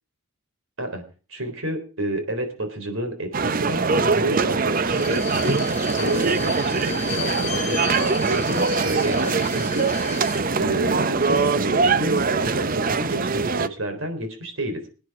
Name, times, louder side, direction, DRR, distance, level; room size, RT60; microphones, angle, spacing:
voice 1, 1.3-5.6 6.0-10.1 10.6-14.9, right 1 dB, 70° right, 6 dB, 3.9 m, -30 dB
sound 1, 3.3-13.7, right 4 dB, 40° right, 0.6 m, -22 dB
Bowed string instrument, 4.8-10.4 10.8-10.9, left 6 dB, 35° left, 1.7 m, -35 dB
24.0 x 9.6 x 3.6 m, 0.35 s
head